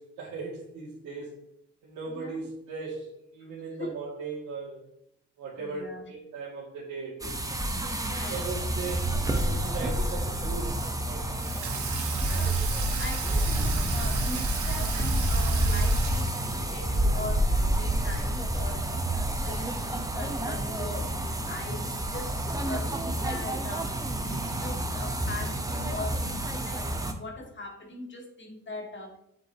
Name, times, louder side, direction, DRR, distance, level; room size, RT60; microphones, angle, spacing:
voice 1, 0.0-1.4 1.8-4.8 5.4-7.4 8.3-11.2, right 4 dB, 85° right, -7 dB, 2.3 m, -38 dB
voice 2, 2.0-2.4 3.4-3.5 3.8-3.9 5.6-6.1 8.1-8.7 11.7-24.0 24.2-29.2, left 2 dB, 40° left, 1 dB, 2.2 m, -41 dB
sound 1, 7.2-27.1, right 1 dB, 10° right, 1.0 m, -29 dB
Water tap faucet / Sink (filling or washing), 11.4-16.6, right 7 dB, 70° right, 1.6 m, -36 dB
8.7 x 7.8 x 2.9 m, 0.77 s
cardioid pair, 90°, 30 cm